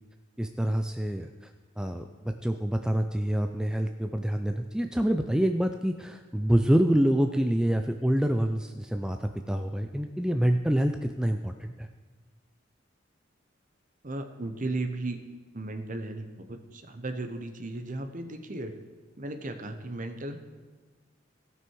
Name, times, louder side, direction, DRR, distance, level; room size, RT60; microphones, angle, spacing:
voice 1, 0.4-1.5 1.8-11.9, right 1 dB, 5° right, 6 dB, 0.3 m, -26 dB
voice 2, 14.0-15.2 15.5-18.7 19.2-20.4, right 2 dB, 45° right, 7 dB, 0.9 m, -35 dB
17.0 x 6.0 x 4.6 m, 1.3 s
head